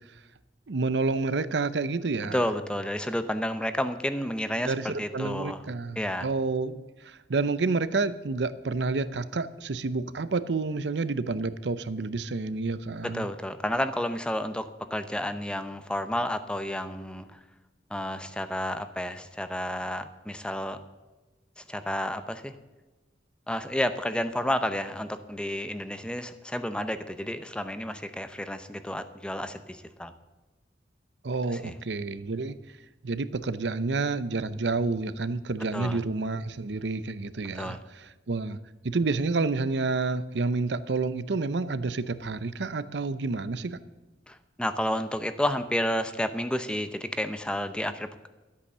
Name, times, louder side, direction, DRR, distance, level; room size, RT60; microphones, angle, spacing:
voice 1, 0.7-2.4 4.6-13.3 31.2-32.6 33.0-38.6 38.8-43.8, right 3 dB, 80° right, 14 dB, 0.7 m, -29 dB
voice 2, 2.3-5.6 6.0-6.3 13.0-17.4 17.9-20.8 21.6-22.5 23.5-30.1 31.5-31.7 35.7-36.0 37.5-37.8 44.3-48.3, left 1 dB, 5° left, 10 dB, 0.6 m, -31 dB
12.5 x 8.5 x 6.7 m, 1.2 s
head